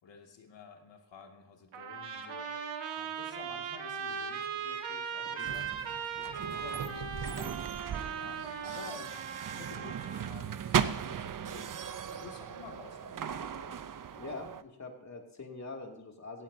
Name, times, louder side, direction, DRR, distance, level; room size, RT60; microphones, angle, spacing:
voice 1, 0.0-2.5 2.9-5.9 6.2-7.6 8.2-9.2 9.5-11.7 12.1-13.8, left 5 dB, 70° left, 3 dB, 2.4 m, -51 dB
Trumpet, 1.7-10.4, right 7 dB, 85° right, 2.1 m, -38 dB
sound 1, 5.4-14.6, right 8 dB, 45° right, 0.8 m, -37 dB
voice 2, 14.2-16.4, left 3 dB, 35° left, 2 dB, 2.7 m, -44 dB
18.0 x 15.0 x 2.8 m, 0.78 s
cardioid pair, 90°, 45 cm